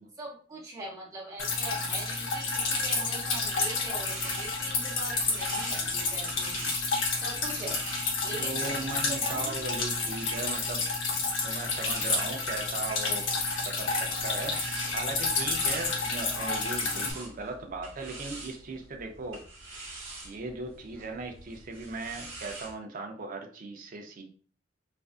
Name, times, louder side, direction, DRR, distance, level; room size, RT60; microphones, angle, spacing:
voice 1, 0.2-7.8 8.2-8.8 9.1-9.6, right 2 dB, 20° right, -5 dB, 0.9 m, -42 dB
Drip, 1.4-17.1, left 3 dB, 75° left, 0.6 m, -30 dB
sound 1, 3.3-11.1 11.6-22.7, right 2 dB, 80° right, 0.9 m, -45 dB
voice 2, 8.3-11.1 11.4-13.3 13.7-19.4 20.2-24.2, right 3 dB, 45° right, 4 dB, 0.5 m, -38 dB
2.5 x 2.3 x 2.4 m, 0.42 s
head